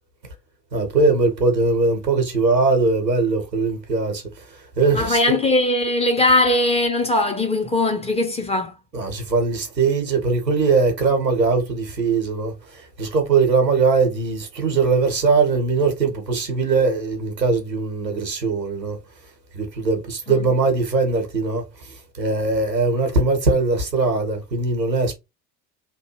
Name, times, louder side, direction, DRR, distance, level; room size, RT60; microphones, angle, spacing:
voice 1, 0.7-5.4 8.9-19.0 19.5-25.1, right 4 dB, 90° right, 1.0 m, -21 dB
voice 2, 4.9-8.7 20.3-20.4, left 2 dB, 15° left, 0.7 m, -20 dB
3.0 x 2.2 x 3.0 m
figure-of-eight pair, 70°, 49 cm